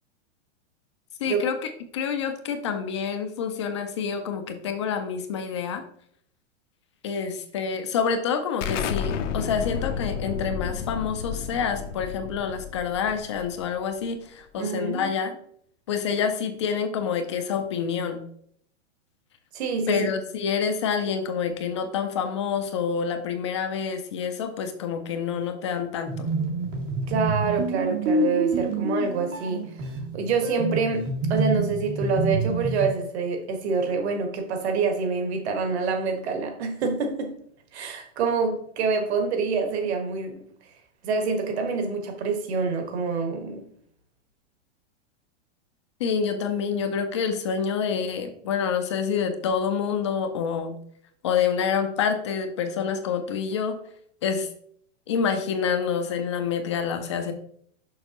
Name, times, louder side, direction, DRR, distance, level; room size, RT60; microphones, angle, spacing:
voice 1, 1.2-5.8 7.0-15.4 15.9-18.2 19.9-26.3 46.0-50.7 51.2-53.8 54.2-54.5 55.1-57.3, left 6 dB, 25° left, 7 dB, 0.4 m, -27 dB
Explosion, 8.6-14.0, left 7 dB, 75° left, 0.8 m, -31 dB
voice 2, 14.6-15.1 19.5-20.1 27.1-29.7 30.1-37.3 37.7-40.4 41.0-43.7, right 4 dB, 60° right, 4 dB, 1.5 m, -26 dB
sound 1, 26.1-32.9, right 3 dB, 85° right, 2.3 m, -27 dB
6.6 x 5.9 x 3.0 m, 0.64 s
supercardioid pair, 165°, 37 cm